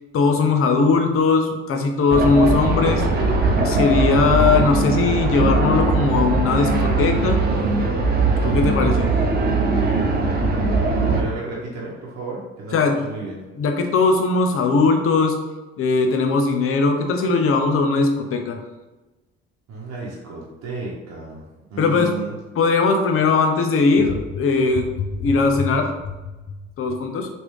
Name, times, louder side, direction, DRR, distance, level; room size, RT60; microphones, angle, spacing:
voice 1, 0.1-3.0 3.6-7.4 8.4-9.1 12.7-13.0 13.6-15.4 15.8-18.6 21.8-22.1 22.6-25.9 26.8-27.3, left 4 dB, 50° left, 4 dB, 0.6 m, -19 dB
sound 1, 2.1-11.2, right 3 dB, 35° right, 0.7 m, -20 dB
voice 2, 11.0-13.4 19.7-22.3, right 3 dB, 60° right, -5 dB, 0.9 m, -33 dB
3.1 x 2.6 x 3.1 m, 1.1 s
hypercardioid pair, 60°, 30 cm